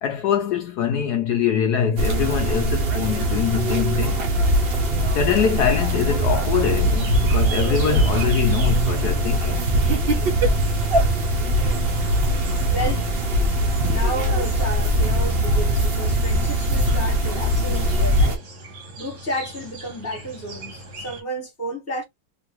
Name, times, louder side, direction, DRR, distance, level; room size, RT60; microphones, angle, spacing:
voice 1, 0.0-4.3 5.1-9.7, left 7 dB, 75° left, 0.9 m, -23 dB
sound 1, 2.0-18.4, right 1 dB, 90° right, 0.5 m, -21 dB
sound 2, 6.8-21.2, right 4 dB, 50° right, 1.1 m, -41 dB
voice 2, 12.7-13.3 13.9-18.5 19.0-22.0, right 1 dB, 10° left, 0.9 m, -32 dB
2.9 x 2.6 x 2.9 m
omnidirectional pair, 2.1 m